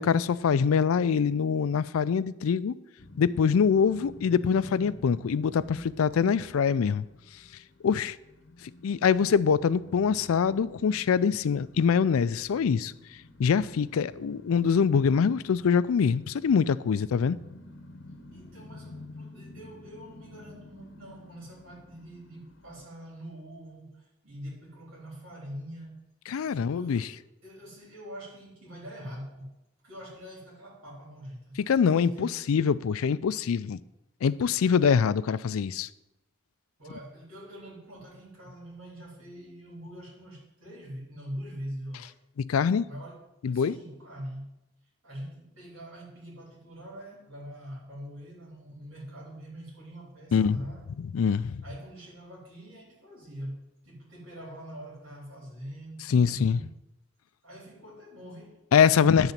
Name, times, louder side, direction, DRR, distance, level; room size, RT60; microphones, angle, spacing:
voice 1, 0.0-2.8 3.2-7.0 7.8-8.2 8.6-12.9 13.4-17.4 26.3-27.1 31.7-33.8 34.2-35.9 42.4-42.9 43.4-43.8 50.3-50.6 51.0-51.6 56.1-56.6 58.7-59.3, left 6 dB, 85° left, 0.4 m, -24 dB
sound 1, 3.0-22.9, left 2 dB, 60° left, 0.8 m, -50 dB
voice 2, 18.3-26.1 26.4-29.6 29.8-31.6 32.0-32.4 34.7-34.8 36.8-42.1 42.8-44.6 45.0-50.9 51.6-56.7 57.4-59.3, equal, 75° right, 3.7 m, -44 dB
10.5 x 4.0 x 7.3 m
head